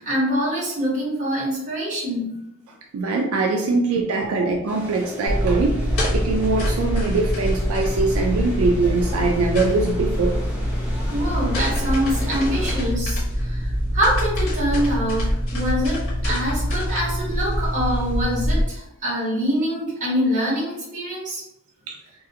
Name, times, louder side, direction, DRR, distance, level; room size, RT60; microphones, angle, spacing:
voice 1, 0.0-2.4 3.7-3.8 4.2-4.3 11.1-21.4, equal, 35° right, -6 dB, 1.0 m, -25 dB
voice 2, 2.9-5.8 6.1-10.4 21.9-22.0, right 3 dB, 70° right, 1 dB, 0.3 m, -22 dB
sound 1, 4.7-12.8, left 1 dB, 5° right, 0.6 m, -36 dB
sound 2, 5.3-18.6, equal, 65° left, 1.0 m, -24 dB
2.4 x 2.3 x 2.7 m, 0.86 s
head